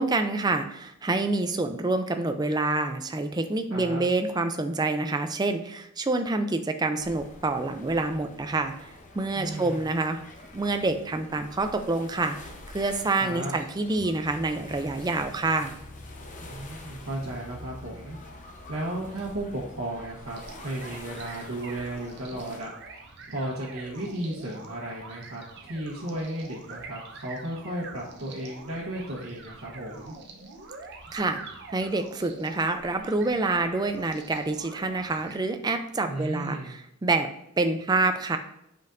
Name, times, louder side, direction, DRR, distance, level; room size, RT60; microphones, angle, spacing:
voice 1, 0.0-10.2 10.5-15.7 31.1-31.4 31.7-37.3 37.6-38.4, right 3 dB, 20° right, 7 dB, 0.4 m, -27 dB
voice 2, 3.7-4.1 9.3-9.9 13.2-13.6 16.4-18.2 18.7-22.7 23.3-30.1 36.0-36.8, right 1 dB, 70° right, -7 dB, 1.2 m, -34 dB
sound 1, 7.0-22.6, left 2 dB, 35° left, 0.8 m, -47 dB
sound 2, 13.9-21.1, left 1 dB, 80° left, 1.5 m, -48 dB
sound 3, 20.4-35.4, right 3 dB, 55° right, 0.7 m, -45 dB
7.9 x 5.3 x 2.6 m, 0.80 s
head